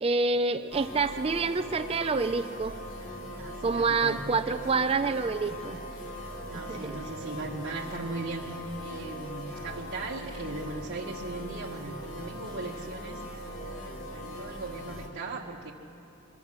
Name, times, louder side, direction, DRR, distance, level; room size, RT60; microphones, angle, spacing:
voice 1, 0.0-2.8 3.6-5.8 6.5-7.0, right 4 dB, 25° right, 10 dB, 0.4 m, -27 dB
sound 1, 0.7-15.1, equal, 70° left, 2.3 m, -40 dB
voice 2, 3.4-4.6 6.5-13.8 14.1-15.7, right 3 dB, 55° right, -4 dB, 1.3 m, -38 dB
24.0 x 14.5 x 7.3 m, 2.8 s
head